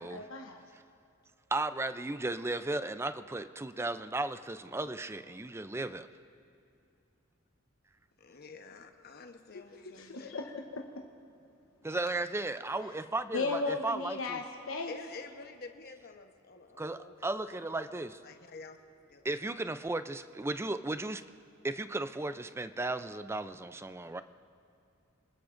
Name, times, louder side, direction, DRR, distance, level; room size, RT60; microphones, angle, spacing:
voice 1, 0.0-0.6 9.9-10.8 13.3-14.9, left 3 dB, 90° left, 1 dB, 1.0 m, -35 dB
voice 2, 1.5-6.1 11.8-14.4 16.8-18.2 19.2-21.2 21.6-24.2, right 2 dB, 15° right, 11 dB, 0.4 m, -35 dB
voice 3, 8.2-10.4 14.9-19.2, left 3 dB, 50° left, 6 dB, 1.0 m, -50 dB
26.5 x 19.5 x 2.6 m, 2.6 s
head